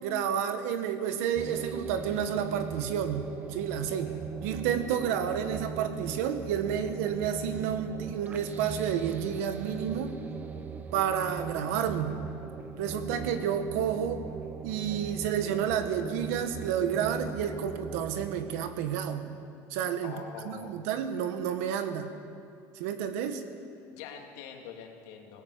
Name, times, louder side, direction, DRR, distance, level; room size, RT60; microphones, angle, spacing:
voice 1, 0.0-4.1 4.4-10.2 10.9-12.2 12.8-14.2 14.6-19.2 19.7-20.1 20.5-22.1 22.8-23.4, right 8 dB, 90° right, 8 dB, 1.7 m, -30 dB
sound 1, 1.3-18.6, right 5 dB, 20° right, 1.1 m, -39 dB
voice 2, 3.9-4.2 20.0-20.7 23.9-25.4, left 7 dB, 85° left, 2 dB, 2.9 m, -44 dB
19.0 x 16.5 x 8.4 m, 2.4 s
cardioid pair, 155°, 8 cm